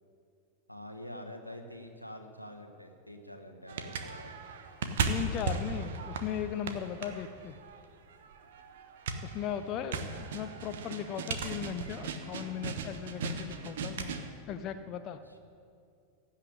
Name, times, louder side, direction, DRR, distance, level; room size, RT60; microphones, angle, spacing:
voice 1, 0.7-4.3 9.5-9.9 15.1-15.4, left 1 dB, 90° left, 4 dB, 1.2 m, -46 dB
sound 1, 3.7-14.3, right 4 dB, 60° right, 1.0 m, -37 dB
voice 2, 5.1-7.6 9.2-14.1 14.5-15.2, left 9 dB, 35° left, 9 dB, 0.6 m, -37 dB
15.5 x 5.7 x 9.8 m, 2.4 s
figure-of-eight pair, 90°, 0 cm